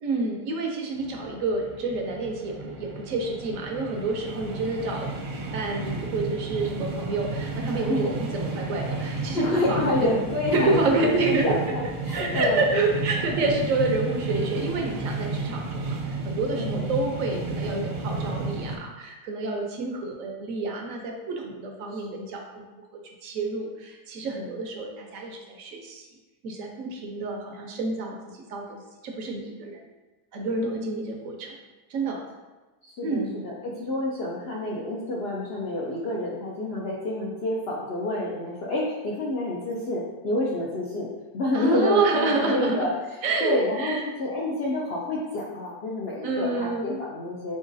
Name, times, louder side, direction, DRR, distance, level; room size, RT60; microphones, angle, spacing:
voice 1, 0.0-5.1 5.5-10.2 10.5-11.8 12.1-26.1 26.4-28.2 28.5-29.8 30.3-31.6 31.9-32.2 33.0-33.3 41.5-42.9 43.2-44.0 46.2-47.0, right 3 dB, 65° right, 2 dB, 0.9 m, -28 dB
sound 1, 1.0-18.8, right 3 dB, 85° right, 1.3 m, -32 dB
voice 2, 7.7-8.1 9.3-12.7 13.4-13.5 16.6-16.9 21.9-22.2 24.4-24.5 30.6-31.0 32.8-42.9 43.4-47.6, left 1 dB, 70° left, -5 dB, 0.6 m, -28 dB
4.0 x 3.8 x 2.5 m, 1.2 s
omnidirectional pair, 1.7 m